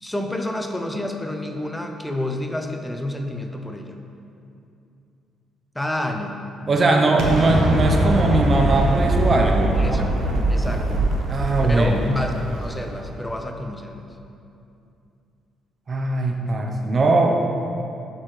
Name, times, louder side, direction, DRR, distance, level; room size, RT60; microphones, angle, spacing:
voice 1, 0.0-4.0 5.7-6.4 9.7-10.0 10.5-11.0 11.7-14.0, left 1 dB, 5° left, 4 dB, 0.6 m, -29 dB
voice 2, 6.7-10.0 11.3-12.0 15.9-17.3, right 2 dB, 40° right, 1 dB, 0.8 m, -20 dB
Explosion, 7.2-13.2, right 1 dB, 80° right, 1.0 m, -22 dB
7.4 x 6.5 x 3.3 m, 2.6 s
cardioid pair, 90°, 0 cm